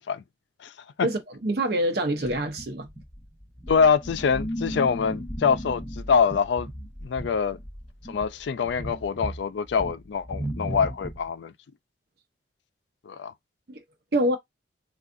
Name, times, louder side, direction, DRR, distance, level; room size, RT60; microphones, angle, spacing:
voice 1, 1.0-2.9 13.7-13.8 14.1-14.4, right 1 dB, 60° right, 0.7 m, -26 dB
sound 1, 2.2-11.3, equal, ahead, 0.6 m, -36 dB
voice 2, 3.7-6.7 7.0-7.6 8.1-11.5 13.1-13.3, left 6 dB, 75° left, 0.4 m, -24 dB
3.6 x 2.4 x 2.5 m
head